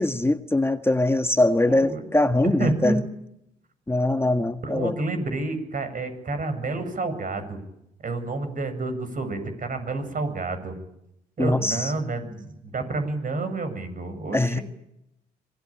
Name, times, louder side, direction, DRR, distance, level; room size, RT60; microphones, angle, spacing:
voice 1, 0.0-3.0 3.9-4.9 11.4-11.9 14.3-14.6, left 2 dB, 15° left, 9 dB, 1.6 m, -22 dB
voice 2, 1.6-2.1 2.4-2.9 4.6-7.6 8.0-10.7 11.4-14.6, right 2 dB, 45° right, 8 dB, 7.7 m, -29 dB
25.5 x 20.0 x 8.9 m, 0.80 s
supercardioid pair, 55°, 19 cm